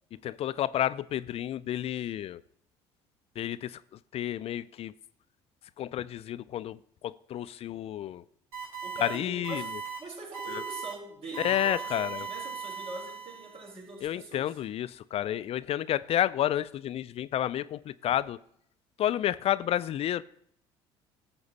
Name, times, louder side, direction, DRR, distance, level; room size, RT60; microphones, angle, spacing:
voice 1, 0.2-2.4 3.4-3.8 4.1-4.9 5.8-6.8 7.0-8.2 9.0-9.6 10.5-10.6 11.4-12.2 14.0-18.4 19.0-20.2, left 12 dB, 50° left, 0.4 m, -30 dB
sound 1, 8.5-9.1 9.4-10.0 10.3-10.9 11.3-13.7, right 7 dB, 85° right, 3.5 m, -38 dB
voice 2, 8.8-9.7 10.0-14.6, right 2 dB, 50° right, 4.1 m, -43 dB
11.0 x 7.0 x 4.1 m
hypercardioid pair, 70°, 13 cm